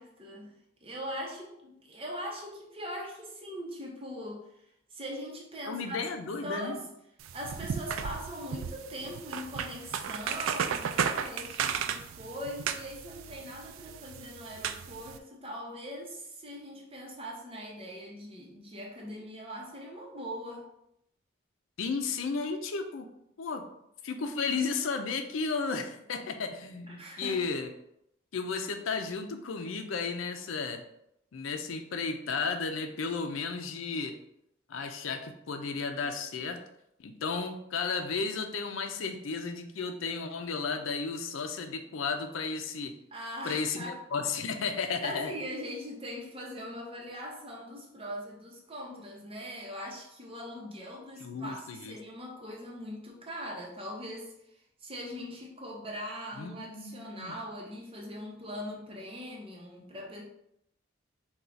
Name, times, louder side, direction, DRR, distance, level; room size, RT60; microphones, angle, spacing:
voice 1, 0.0-4.5 4.9-6.0 6.4-6.9 7.3-20.7 26.9-27.6 43.1-44.0 44.7-60.2, equal, 30° right, -2 dB, 0.8 m, -41 dB
voice 2, 5.7-6.8 21.8-23.1 23.4-23.7 24.0-27.7 28.3-30.8 31.3-34.2 34.7-36.6 37.0-42.9 43.4-45.3 51.2-51.9 56.4-57.3, left 4 dB, 85° left, 6 dB, 0.5 m, -33 dB
sound 1, 7.2-15.2, right 7 dB, 85° right, 0.3 m, -35 dB
4.4 x 2.3 x 3.9 m, 0.79 s
head